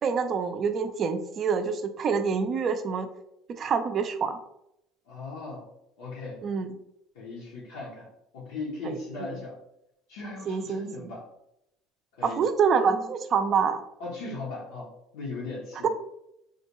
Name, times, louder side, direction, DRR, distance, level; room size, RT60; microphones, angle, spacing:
voice 1, 0.0-3.1 3.6-4.4 6.4-6.7 8.8-9.3 10.5-10.8 12.2-13.8 15.8-15.9, right 6 dB, 40° right, 8 dB, 0.4 m, -26 dB
voice 2, 5.1-5.7 6.0-6.4 7.1-9.6 10.1-11.3 12.1-12.5 14.0-15.9, left 3 dB, 90° left, -4 dB, 0.8 m, -38 dB
3.8 x 2.2 x 2.9 m, 0.82 s
supercardioid pair, 110°, 0 cm